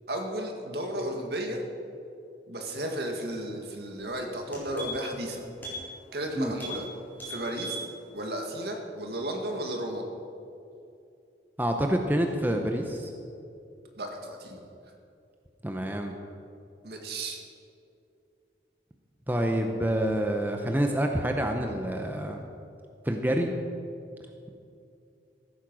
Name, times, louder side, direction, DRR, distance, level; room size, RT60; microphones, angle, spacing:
voice 1, 0.1-1.6 2.5-5.4 6.1-6.8 7.3-7.9 8.1-10.0 14.0-14.6 16.8-17.4, right 1 dB, 65° right, 2 dB, 1.9 m, -34 dB
sound 1, 3.9-4.0 4.3-5.2 5.6-5.8 6.1-6.3 6.5-6.8 7.1-7.9 8.2-8.3, right 1 dB, 10° left, 3.7 m, -38 dB
voice 2, 11.6-13.1 15.6-16.1 19.3-22.4 23.0-23.5, right 1 dB, 10° right, 3 dB, 0.7 m, -27 dB
15.0 x 9.0 x 6.2 m, 2.6 s
head